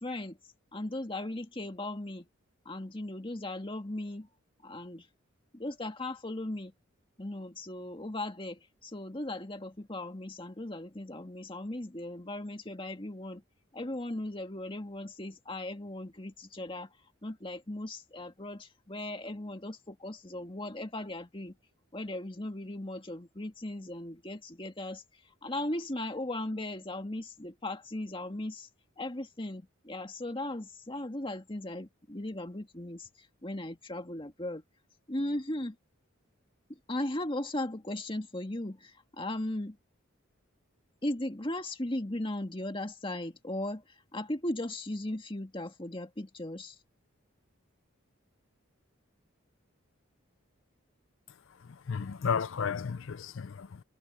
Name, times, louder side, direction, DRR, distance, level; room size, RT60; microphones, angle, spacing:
voice 1, 0.0-0.4 0.7-2.3 2.7-4.3 4.6-5.1 5.5-6.7 7.2-13.4 13.7-16.9 17.2-21.6 21.9-25.0 25.4-28.7 29.0-34.6 35.1-35.8 36.7-39.8 41.0-46.8, left 1 dB, 25° left, 1.9 m, -37 dB
voice 2, 51.7-53.8, left 6 dB, 65° left, 0.5 m, -33 dB
head